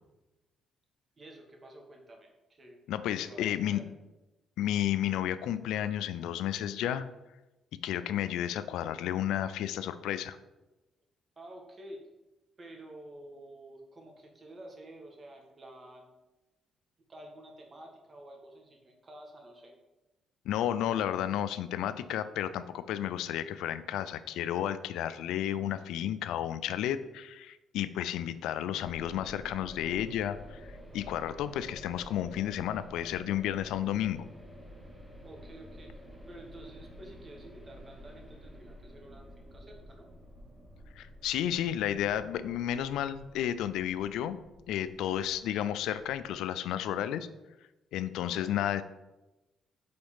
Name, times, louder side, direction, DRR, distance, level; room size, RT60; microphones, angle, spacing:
voice 1, 1.2-2.8 3.2-3.8 11.4-12.0 12.6-16.1 17.1-19.8 35.2-35.9 36.3-40.1 48.3-48.6, right 1 dB, 35° right, 1 dB, 1.5 m, -50 dB
voice 2, 2.9-3.9 4.6-7.1 7.8-10.4 20.5-34.3 41.0-44.4 44.7-47.3 47.9-48.8, left 11 dB, 90° left, 13 dB, 0.3 m, -32 dB
sound 1, 28.8-46.3, equal, 20° right, 1.6 m, -50 dB
5.1 x 3.9 x 5.5 m, 1.0 s
cardioid pair, 90°, 0 cm